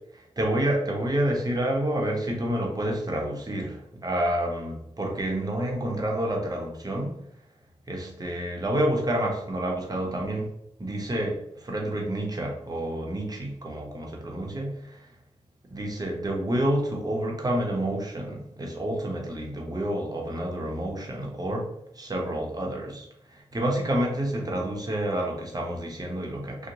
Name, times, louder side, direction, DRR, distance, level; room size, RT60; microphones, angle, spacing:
voice 1, 0.1-7.1 7.9-10.5 10.8-15.1 15.7-26.7, right 1 dB, 30° right, 0 dB, 0.7 m, -29 dB
2.9 x 2.0 x 2.6 m, 0.77 s
cardioid pair, 50°, 13 cm